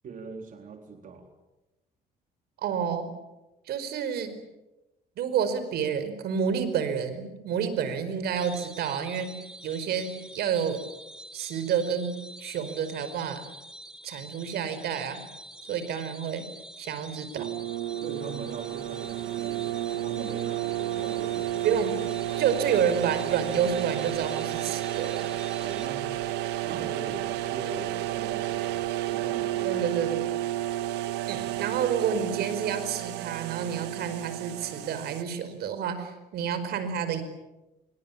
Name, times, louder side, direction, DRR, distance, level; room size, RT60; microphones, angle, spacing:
voice 1, 0.0-1.3 18.0-19.7 20.0-21.8 25.6-26.1 26.6-29.9, right 4 dB, 50° right, 5 dB, 3.9 m, -41 dB
voice 2, 2.6-3.1 3.7-4.4 5.2-9.4 9.6-10.8 11.3-13.4 14.0-15.2 15.7-16.5 16.8-17.5 21.6-22.0 22.3-25.3 29.6-30.3 31.3-37.2, right 7 dB, 70° right, 11 dB, 5.0 m, -29 dB
sound 1, 8.4-25.9, right 1 dB, 5° right, 2.7 m, -46 dB
sound 2, 17.4-35.2, right 14 dB, 90° right, 1.6 m, -31 dB
27.0 x 23.5 x 8.8 m, 1.0 s
cardioid pair, 110°, 17 cm